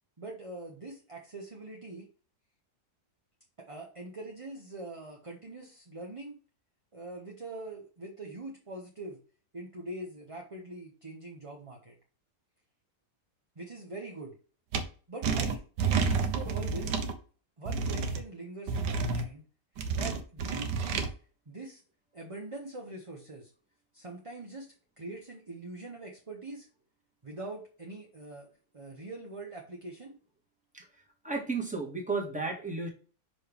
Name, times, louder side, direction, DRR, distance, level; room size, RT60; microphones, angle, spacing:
voice 1, 0.2-2.1 3.7-6.4 6.9-9.2 9.5-11.9 13.6-14.4 15.1-17.0 17.6-19.4 19.9-21.1 21.5-21.8 22.1-23.5 23.9-24.7 25.0-26.7 27.2-28.5 28.7-30.2, right 2 dB, 25° right, -1 dB, 0.8 m, -43 dB
sound 1, 14.7-14.8 15.2-17.1 17.7-18.2 18.7-19.2 19.8-21.1, right 5 dB, 90° right, 1.5 m, -29 dB
voice 2, 31.2-32.9, right 4 dB, 5° right, -1 dB, 1.5 m, -33 dB
6.0 x 4.6 x 3.5 m, 0.39 s
omnidirectional pair, 1.8 m